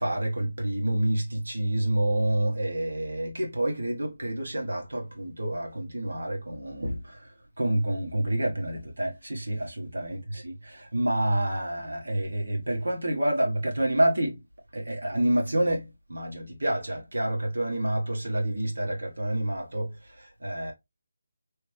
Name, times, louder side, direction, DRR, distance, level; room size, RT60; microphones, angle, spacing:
voice 1, 0.0-14.4 14.7-20.7, right 1 dB, 70° right, 1.2 m, -28 dB
3.1 x 2.0 x 3.2 m
figure-of-eight pair, 155°, 0 cm